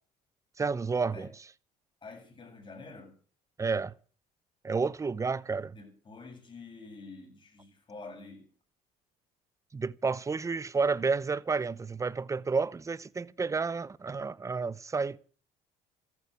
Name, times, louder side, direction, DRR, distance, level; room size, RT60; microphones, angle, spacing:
voice 1, 0.6-1.3 3.6-3.9 4.6-5.8 9.7-15.2, right 4 dB, 20° right, 0.8 m, -30 dB
voice 2, 2.0-3.2 5.7-8.5, left 3 dB, 30° left, 7.6 m, -47 dB
14.5 x 11.0 x 8.3 m
cardioid pair, 100°, 16 cm